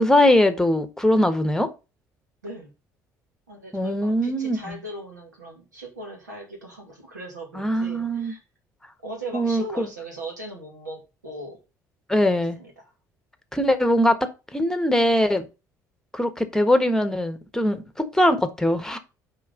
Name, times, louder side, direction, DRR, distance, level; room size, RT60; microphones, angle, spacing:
voice 1, 0.0-1.7 3.7-4.8 7.5-8.3 9.3-9.9 12.1-12.6 13.5-14.2 14.5-15.4 16.1-19.0, left 1 dB, 5° left, 1.5 m, -21 dB
voice 2, 3.5-8.4 9.0-11.6 12.4-12.9, right 1 dB, 85° right, 2.5 m, -38 dB
6.2 x 5.3 x 5.3 m
figure-of-eight pair, 50°, 9 cm